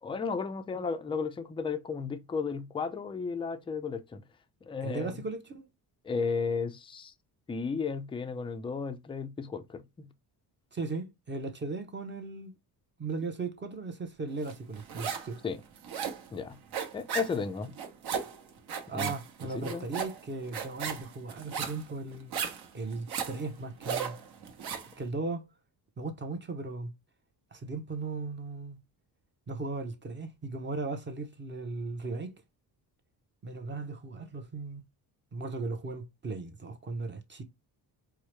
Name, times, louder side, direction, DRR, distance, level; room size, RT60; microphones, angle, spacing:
voice 1, 0.0-4.2 4.6-5.2 6.0-7.1 7.5-10.1 15.4-15.6 16.3-16.6 16.9-17.7 18.9-19.1 19.6-19.9, left 5 dB, 15° left, 0.3 m, -34 dB
voice 2, 4.8-5.7 10.7-12.5 13.0-15.4 18.9-22.3 22.7-24.2 25.0-25.5 26.0-26.9 27.5-28.8 29.5-32.3 33.4-34.9 35.3-37.4, right 3 dB, 25° right, 0.7 m, -37 dB
sound 1, 14.5-15.4 15.6-24.9, right 7 dB, 65° right, 1.0 m, -36 dB
4.6 x 2.0 x 3.2 m
cardioid pair, 125°, 41 cm